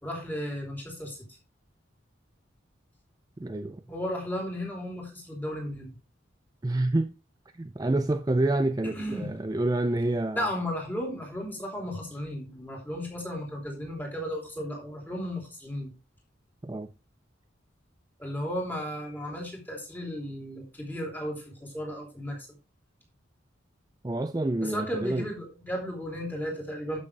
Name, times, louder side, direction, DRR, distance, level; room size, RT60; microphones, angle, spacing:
voice 1, 0.0-1.2 3.9-6.0 8.9-9.3 10.3-15.9 18.2-22.5 24.6-27.0, equal, 10° left, 3.2 m, -34 dB
voice 2, 3.4-3.8 6.6-7.1 7.6-10.5 16.6-16.9 24.0-25.3, right 2 dB, 20° right, 0.4 m, -28 dB
12.0 x 6.4 x 3.3 m
head